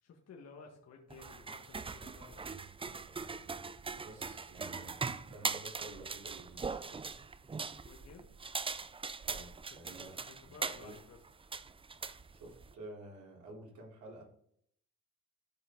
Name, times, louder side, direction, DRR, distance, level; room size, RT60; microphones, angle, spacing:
voice 1, 0.0-2.5 7.6-8.4 9.9-11.2, left 5 dB, 55° left, 0 dB, 1.7 m, -55 dB
sound 1, 1.1-12.7, right 4 dB, 20° right, 0.4 m, -41 dB
voice 2, 3.9-7.2 9.2-10.9 12.3-14.2, right 2 dB, 75° right, -2 dB, 3.8 m, -52 dB
13.5 x 5.1 x 3.8 m, 0.69 s
cardioid pair, 90°, 30 cm